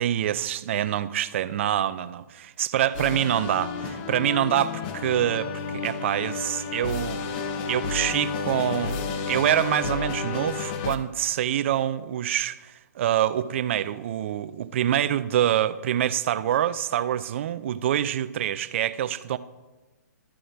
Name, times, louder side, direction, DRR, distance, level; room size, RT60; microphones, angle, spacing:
voice 1, 0.0-7.2 7.7-19.4, right 11 dB, 40° right, 0.5 m, -26 dB
sound 1, 2.9-11.0, left 5 dB, 30° left, 0.7 m, -31 dB
13.0 x 5.0 x 5.8 m
hypercardioid pair, 140°, 10 cm